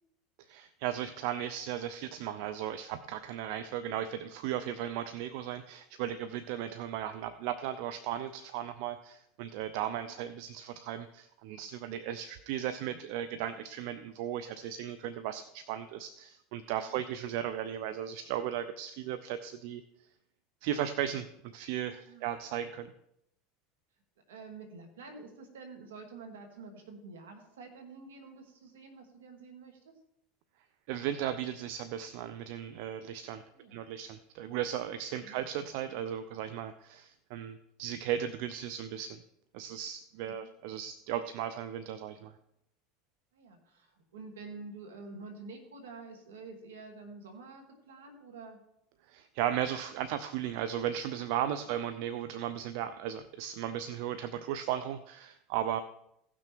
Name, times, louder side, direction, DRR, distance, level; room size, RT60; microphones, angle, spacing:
voice 1, 0.5-19.8 20.6-21.3 21.5-22.9 30.9-33.4 33.7-39.2 39.5-42.3 49.1-55.8, right 10 dB, 65° right, 12 dB, 0.6 m, -36 dB
voice 2, 3.6-4.0 10.0-10.2 16.8-17.1 22.1-22.3 24.3-29.9 33.5-33.9 35.2-35.4 40.2-40.5 43.3-48.6, right 3 dB, 85° right, 4 dB, 2.2 m, -48 dB
16.0 x 6.2 x 4.6 m, 0.79 s
hypercardioid pair, 95°, 0 cm